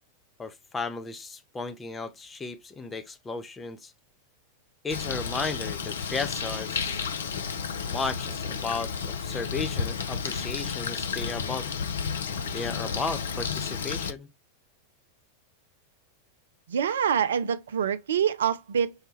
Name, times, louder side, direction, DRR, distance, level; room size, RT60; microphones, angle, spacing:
voice 1, 0.4-3.9 4.8-7.1 7.9-11.7 12.5-14.3, left 4 dB, 15° left, 0.6 m, -34 dB
Bird, 4.9-14.1, left 6 dB, 65° left, 0.5 m, -32 dB
voice 2, 16.7-18.9, right 8 dB, 65° right, 0.4 m, -25 dB
6.3 x 2.2 x 3.0 m
figure-of-eight pair, 90°, 0 cm